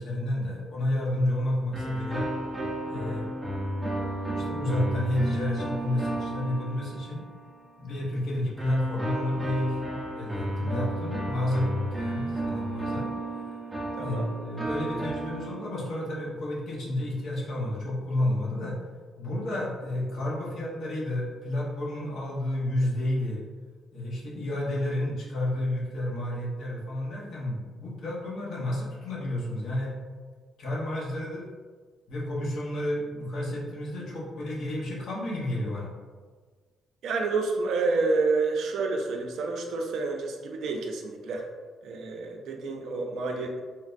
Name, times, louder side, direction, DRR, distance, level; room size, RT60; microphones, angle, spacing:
voice 1, 0.0-2.3 2.8-3.3 4.4-7.2 7.8-9.8 10.1-13.1 14.0-18.8 19.2-23.4 23.9-29.9 30.6-31.4 32.1-35.9, left 1 dB, 65° left, -4 dB, 0.8 m, -30 dB
sound 1, 1.7-7.5 8.6-16.0, right 1 dB, 5° right, 0.5 m, -33 dB
voice 2, 14.0-14.3 37.0-41.5 41.8-43.6, right 3 dB, 75° right, 2 dB, 0.4 m, -29 dB
3.2 x 2.2 x 2.5 m, 1.5 s
cardioid pair, 100°, 0 cm